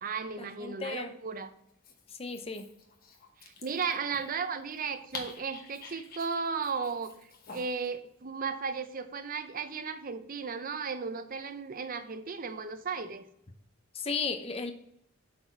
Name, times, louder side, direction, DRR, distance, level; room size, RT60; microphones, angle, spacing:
voice 1, 0.0-1.5 3.4-7.1 7.5-13.3, right 5 dB, 45° right, 10 dB, 0.6 m, -35 dB
voice 2, 0.6-1.1 2.2-2.6 13.9-14.7, left 4 dB, 30° left, 6 dB, 0.6 m, -34 dB
Dog, 1.7-7.9, left 4 dB, 45° left, 1.1 m, -48 dB
7.7 x 4.3 x 4.5 m, 0.76 s
head